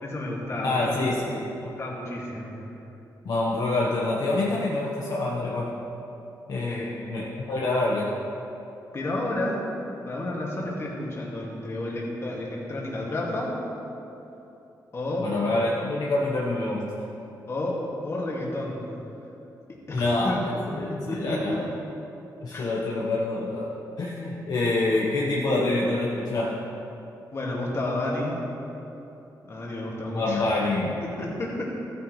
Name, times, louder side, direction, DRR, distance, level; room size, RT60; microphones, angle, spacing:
voice 1, 0.0-1.0 1.6-2.6 6.7-7.0 8.9-9.6 10.1-13.6 14.9-15.3 17.5-18.8 19.7-20.4 20.7-21.6 22.5-22.7 27.3-28.4 29.5-30.5 31.0-31.8, left 1 dB, 40° left, -3 dB, 2.1 m, -31 dB
voice 2, 0.6-1.5 3.2-5.8 6.5-8.1 15.2-16.9 19.9-21.7 22.4-26.6 30.0-31.0, left 2 dB, 60° left, -4 dB, 1.1 m, -26 dB
14.5 x 9.2 x 3.2 m, 3.0 s
wide cardioid pair, 120°, 7 cm